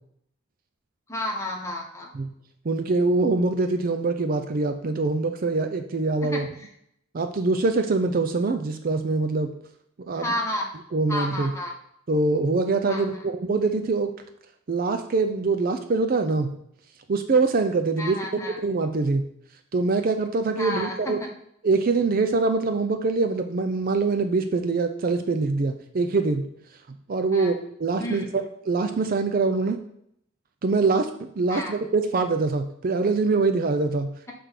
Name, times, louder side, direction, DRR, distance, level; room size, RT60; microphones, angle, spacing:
voice 1, 1.1-2.1 6.3-6.7 10.1-10.7 11.1-11.7 12.9-13.2 18.0-18.6 20.6-21.3 27.3-27.5 28.0-28.3 31.5-31.8, left 1 dB, 15° left, -1 dB, 1.1 m, -31 dB
voice 2, 2.7-6.5 7.1-9.5 10.0-10.3 10.9-11.5 12.1-14.1 14.7-16.5 17.1-18.2 18.6-19.2 19.7-21.2 21.6-26.4 27.1-29.8 30.6-34.3, right 3 dB, 45° right, 7 dB, 0.4 m, -24 dB
6.5 x 3.4 x 5.7 m, 0.72 s
head